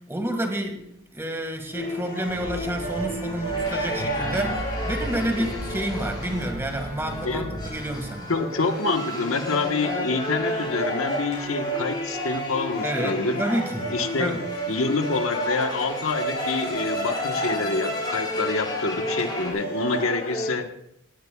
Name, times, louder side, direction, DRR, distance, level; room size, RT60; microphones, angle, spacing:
voice 1, 0.1-0.8 1.1-8.3 12.8-13.9 14.2-14.4, right 1 dB, 10° right, 4 dB, 1.9 m, -29 dB
sound 1, 1.7-20.5, equal, 40° left, 7.0 m, -32 dB
sound 2, 1.7-19.5, left 1 dB, 20° left, 4.9 m, -36 dB
sound 3, 2.3-8.1, right 1 dB, 40° right, 1.8 m, -36 dB
voice 2, 7.2-7.5 8.3-13.4 13.9-14.3 14.7-20.7, left 3 dB, 85° left, 5 dB, 1.3 m, -27 dB
18.0 x 17.0 x 2.4 m, 0.75 s
head